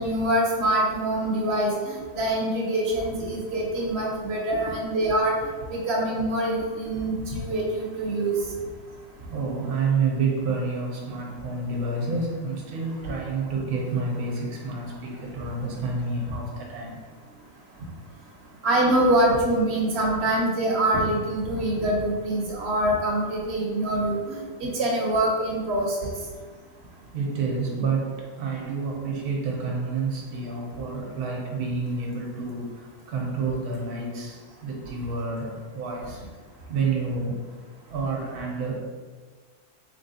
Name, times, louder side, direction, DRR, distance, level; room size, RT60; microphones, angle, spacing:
voice 1, 0.0-5.3 5.7-8.3 18.6-26.1, right 1 dB, 50° right, -2 dB, 0.9 m, -24 dB
voice 2, 9.3-17.0 27.1-36.2 36.7-37.4 37.9-38.8, right 4 dB, 80° right, -1 dB, 1.2 m, -29 dB
3.9 x 3.4 x 2.7 m, 1.5 s
omnidirectional pair, 1.6 m